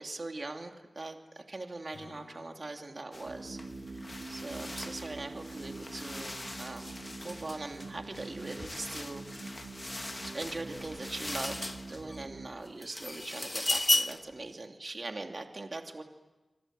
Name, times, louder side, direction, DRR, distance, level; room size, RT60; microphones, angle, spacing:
voice 1, 0.0-3.6 4.3-9.6 10.3-16.0, right 2 dB, 45° right, 3 dB, 2.8 m, -41 dB
Acoustic guitar / Strum, 1.9-5.2, left 3 dB, 75° left, 3.9 m, -58 dB
sound 1, 3.1-3.3 3.6-12.2 12.6-14.3, left 1 dB, 25° left, 1.1 m, -37 dB
sound 2, 3.2-12.5, right 3 dB, 85° right, 7.9 m, -45 dB
29.0 x 25.5 x 7.7 m, 1.1 s
wide cardioid pair, 90°, 0 cm